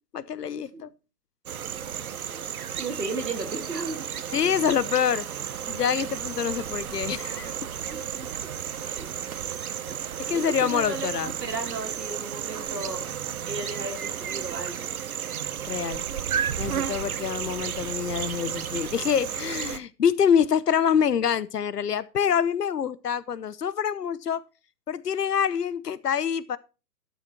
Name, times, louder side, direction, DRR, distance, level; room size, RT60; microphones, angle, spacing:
voice 1, 0.1-0.9 4.3-5.3 5.7-7.5 10.2-11.3 15.7-16.0 16.6-24.4 24.9-26.6, left 8 dB, 70° left, 0.9 m, -26 dB
sound 1, 1.5-19.8, right 8 dB, 60° right, 1.0 m, -33 dB
voice 2, 2.8-4.1 7.9-8.3 8.8-9.5 10.3-13.1 13.4-14.9, right 3 dB, 80° right, 3.0 m, -35 dB
12.0 x 7.1 x 4.3 m
figure-of-eight pair, 130°, 48 cm